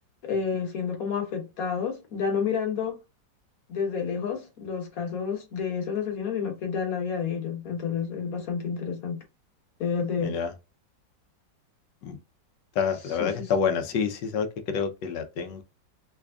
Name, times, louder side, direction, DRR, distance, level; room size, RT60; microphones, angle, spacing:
voice 1, 0.3-3.0 3.7-9.2 9.8-10.3 13.2-13.5, left 6 dB, 55° left, 1.5 m, -30 dB
voice 2, 10.2-10.5 12.0-12.2 12.7-15.6, left 6 dB, 75° left, 1.3 m, -28 dB
3.5 x 3.4 x 2.3 m
omnidirectional pair, 2.0 m